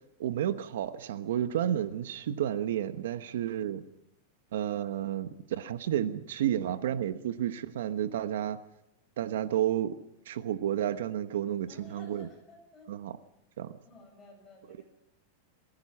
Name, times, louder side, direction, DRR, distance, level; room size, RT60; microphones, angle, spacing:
voice 1, 0.2-3.9 4.5-8.6 9.2-10.0 10.3-12.3 12.9-13.1 13.6-13.8, right 10 dB, 75° right, 1.1 m, -31 dB
voice 2, 11.7-12.9 13.8-14.8, left 2 dB, 10° left, 7.8 m, -54 dB
23.5 x 16.0 x 7.3 m
supercardioid pair, 175°, 0 cm